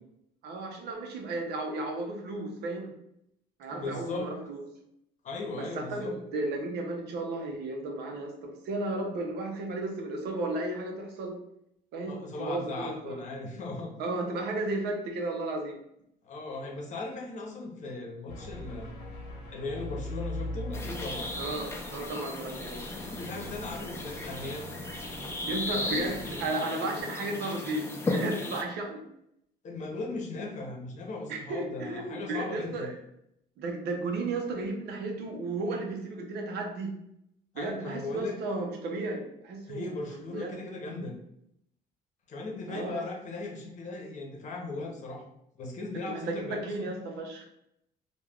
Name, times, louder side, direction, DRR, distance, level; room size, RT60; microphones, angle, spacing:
voice 1, 0.4-2.9 3.6-4.6 5.6-11.4 11.9-13.2 14.0-15.8 21.4-22.9 25.5-29.1 31.3-32.9 33.6-37.0 37.5-40.6 40.9-41.1 42.7-43.0 46.1-47.5, right 2 dB, 75° right, 2 dB, 0.7 m, -34 dB
voice 2, 3.7-4.3 5.2-6.2 12.1-13.9 16.2-18.9 19.5-21.3 22.9-24.7 25.8-26.3 29.6-32.9 37.5-38.4 39.7-41.2 42.3-45.2 45.5-46.9, left 3 dB, 45° left, 0 dB, 0.8 m, -38 dB
sound 1, 18.3-26.5, left 1 dB, 90° left, 0.8 m, -41 dB
sound 2, 20.7-28.6, left 2 dB, 15° left, 0.4 m, -36 dB
3.3 x 2.3 x 2.3 m, 0.76 s
cardioid pair, 110°, 17 cm